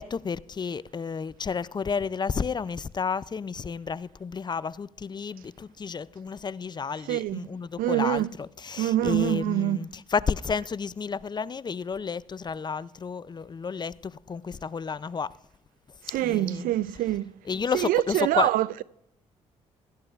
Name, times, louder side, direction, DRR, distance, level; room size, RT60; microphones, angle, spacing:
voice 1, 0.0-15.3 16.2-16.7 17.5-18.5, left 5 dB, 30° left, 0.4 m, -31 dB
voice 2, 7.1-7.4 7.8-8.3 8.8-9.8 16.1-17.2 17.7-18.8, right 14 dB, 75° right, 0.4 m, -25 dB
16.5 x 13.0 x 2.4 m
supercardioid pair, 55°, 15 cm